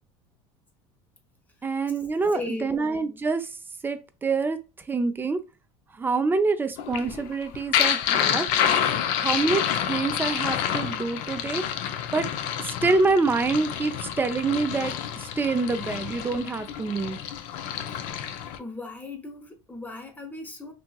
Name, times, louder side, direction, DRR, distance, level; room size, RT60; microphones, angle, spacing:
voice 1, 1.6-3.5 3.8-4.6 4.9-5.4 6.0-8.5 9.2-9.6 9.9-11.6 12.1-12.3 12.8-14.9 15.4-17.2, right 3 dB, 15° right, 0.4 m, -26 dB
voice 2, 2.3-2.8 18.6-20.7, left 3 dB, 10° left, 0.8 m, -37 dB
sound 1, 6.8-18.6, left 9 dB, 70° left, 0.4 m, -28 dB
2.8 x 2.7 x 2.3 m
supercardioid pair, 105°, 14 cm